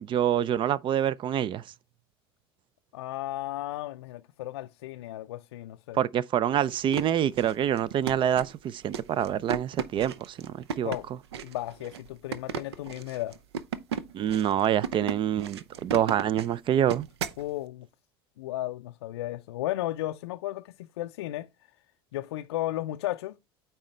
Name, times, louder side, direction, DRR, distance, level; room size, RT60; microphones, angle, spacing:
voice 1, 0.0-1.6 5.9-10.9 14.1-17.1, right 10 dB, 40° right, 0.4 m, -26 dB
voice 2, 2.9-6.0 10.8-11.1 11.4-13.4 17.4-17.9 18.4-21.5 22.1-23.4, left 15 dB, 80° left, 0.4 m, -34 dB
sound 1, 6.7-17.4, right 7 dB, 85° right, 0.6 m, -36 dB
8.8 x 4.3 x 3.2 m
hypercardioid pair, 85°, 13 cm